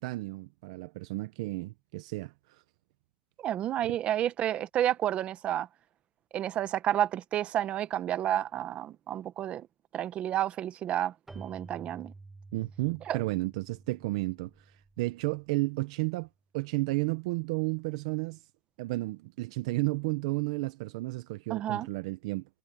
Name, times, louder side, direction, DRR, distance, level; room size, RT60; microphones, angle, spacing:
voice 1, 0.0-2.6 3.9-4.0 12.5-16.3 16.5-18.4 18.8-22.5, right 22 dB, 85° right, 0.7 m, -32 dB
voice 2, 3.4-5.7 6.3-9.7 9.9-12.1 13.1-13.2 21.5-21.9, right 11 dB, 35° right, 0.9 m, -30 dB
Keyboard (musical), 11.3-15.8, right 3 dB, 10° right, 1.1 m, -51 dB
cardioid pair, 150°, 3 cm